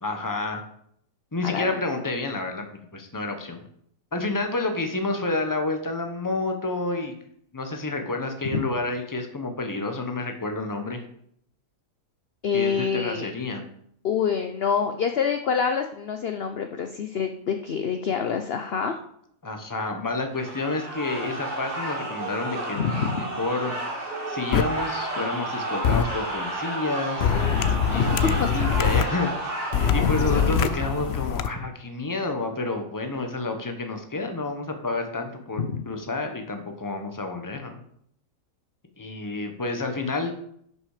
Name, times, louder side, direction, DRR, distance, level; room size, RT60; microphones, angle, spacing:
voice 1, 0.0-0.6 1.3-3.6 4.1-7.1 7.5-11.0 12.5-13.6 19.4-23.7 24.3-27.3 27.9-29.3 29.9-37.8 39.0-40.3, left 2 dB, 15° left, 5 dB, 1.0 m, -29 dB
voice 2, 1.4-1.8 8.5-8.6 12.4-13.3 14.0-19.0 22.7-23.2 27.9-28.5 29.8-30.6 35.6-35.8, left 6 dB, 55° left, 6 dB, 0.7 m, -27 dB
sound 1, 20.3-31.3, right 1 dB, 65° right, 3.3 m, -32 dB
sound 2, 24.5-24.6 25.8-26.0 27.2-29.0 29.7-31.5, left 7 dB, 90° left, 0.5 m, -23 dB
11.0 x 6.0 x 5.0 m, 0.68 s
omnidirectional pair, 1.8 m